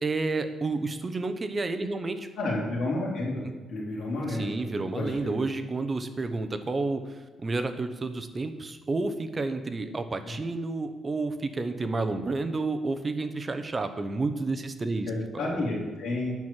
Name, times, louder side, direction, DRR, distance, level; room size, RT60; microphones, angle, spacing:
voice 1, 0.0-2.3 3.4-3.5 4.3-15.6, right 3 dB, 25° right, 9 dB, 0.7 m, -30 dB
voice 2, 2.4-3.4 3.7-5.4 10.2-10.4 15.1-16.4, left 2 dB, 60° left, -5 dB, 3.6 m, -31 dB
9.2 x 6.1 x 7.4 m, 1.3 s
cardioid pair, 155°, 0 cm